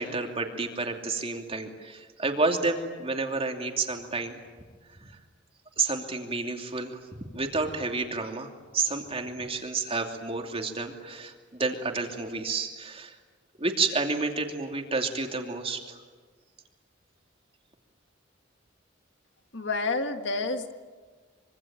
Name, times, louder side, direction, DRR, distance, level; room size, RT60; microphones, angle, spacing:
voice 1, 0.0-4.4 5.0-5.1 5.8-7.0 7.3-8.5 8.7-13.2 13.6-16.0, right 3 dB, 30° right, 3 dB, 2.8 m, -30 dB
voice 2, 19.5-20.7, left 3 dB, 65° left, 7 dB, 1.7 m, -29 dB
25.5 x 25.0 x 9.0 m, 1.5 s
head